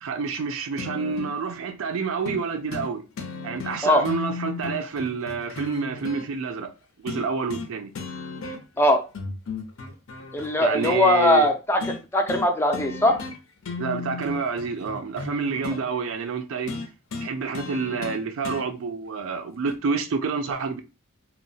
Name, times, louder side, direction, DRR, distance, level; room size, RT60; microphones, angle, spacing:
voice 1, 0.0-3.0 3.4-6.7 7.0-7.9 10.6-11.5 13.8-16.7 17.2-20.8, right 5 dB, 70° right, 0.4 m, -28 dB
sound 1, 0.8-1.4 2.3-2.4 2.7-2.9 3.2-6.3 7.1-7.7 7.9-8.8 9.1-11.0 11.8-12.0 12.3-12.5 12.7-13.4 13.6-15.8 16.7-18.7 19.7-19.8, left 4 dB, 70° left, 0.5 m, -35 dB
voice 2, 10.3-11.8 12.1-13.2, left 1 dB, 10° left, 0.3 m, -20 dB
2.9 x 2.0 x 2.6 m
head